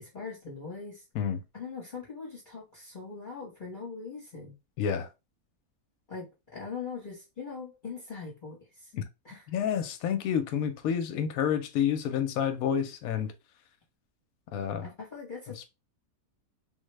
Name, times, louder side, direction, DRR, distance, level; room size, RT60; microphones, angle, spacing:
voice 1, 0.0-1.0 1.5-4.5 6.1-8.9 9.2-9.4 14.8-15.7, left 5 dB, 35° left, 0.9 m, -41 dB
voice 2, 4.8-5.1 8.9-9.0 9.5-13.3 14.5-14.9 15.6-15.7, left 8 dB, 70° left, 1.0 m, -29 dB
3.6 x 2.1 x 3.2 m
omnidirectional pair, 1.7 m